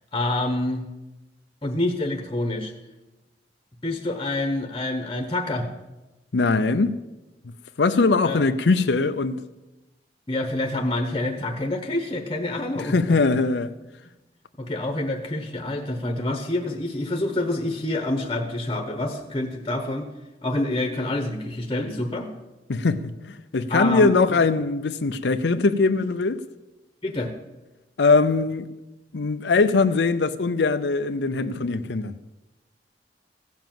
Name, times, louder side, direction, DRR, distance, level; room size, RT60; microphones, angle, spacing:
voice 1, 0.1-0.9 1.6-2.7 3.8-5.7 8.2-8.4 10.3-13.2 14.6-20.1 20.4-22.3 23.7-24.4 27.0-27.3, left 1 dB, 25° left, 1.1 m, -27 dB
voice 2, 6.3-6.9 7.8-9.4 12.7-13.7 22.7-26.4 28.0-28.7 29.1-32.1, left 3 dB, 75° left, 0.6 m, -21 dB
15.5 x 7.2 x 7.7 m
head